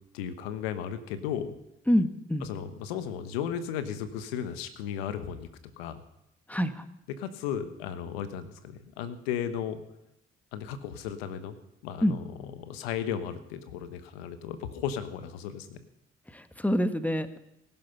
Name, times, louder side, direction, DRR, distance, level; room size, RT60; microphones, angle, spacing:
voice 1, 0.1-1.6 2.4-5.5 5.8-6.0 7.1-9.8 10.5-11.6 11.8-15.8, left 8 dB, 90° left, 11 dB, 1.0 m, -35 dB
voice 2, 1.9-2.5 6.5-6.8 12.0-12.2 16.3-17.4, equal, 5° left, 10 dB, 1.5 m, -26 dB
18.0 x 11.0 x 5.8 m, 0.87 s
hypercardioid pair, 45°, 30 cm